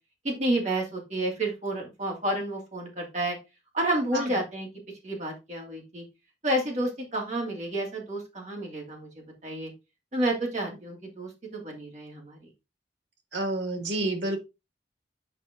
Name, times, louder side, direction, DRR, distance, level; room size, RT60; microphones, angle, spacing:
voice 1, 0.2-3.4 3.7-4.7 5.0-6.0 6.4-9.1 9.4-9.7 10.1-12.4, right 1 dB, 40° right, 0 dB, 2.7 m, -30 dB
voice 2, 13.3-14.4, right 2 dB, 90° right, 7 dB, 1.8 m, -29 dB
7.0 x 5.1 x 3.8 m, 0.25 s
head